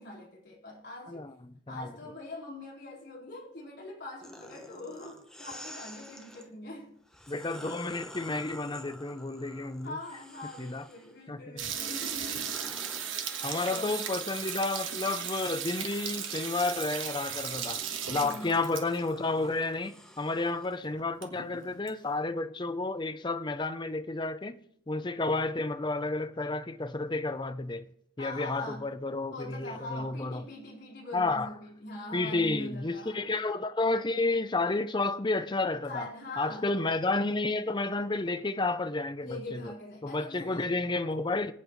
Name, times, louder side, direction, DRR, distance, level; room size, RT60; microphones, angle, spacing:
voice 1, 0.0-1.3 1.7-7.0 9.8-12.2 13.4-14.1 18.1-18.5 28.2-28.9 29.3-33.3 35.9-36.7 39.2-40.8, left 2 dB, 50° left, 4.3 m, -43 dB
sound 1, 4.2-6.5 7.1-11.1 11.6-20.8, equal, 5° left, 0.9 m, -50 dB
voice 2, 7.3-10.0 10.6-10.8 11.3-11.6 13.4-24.6 24.9-27.9 28.2-30.4 31.1-31.5 32.1-36.1 36.4-39.7 40.0-41.5, left 3 dB, 20° left, 0.6 m, -31 dB
sound 2, 11.6-19.1 19.4-19.5 19.8-19.9 20.5-20.6 20.8-21.9, right 8 dB, 65° right, 1.5 m, -36 dB
25.0 x 8.6 x 3.2 m
head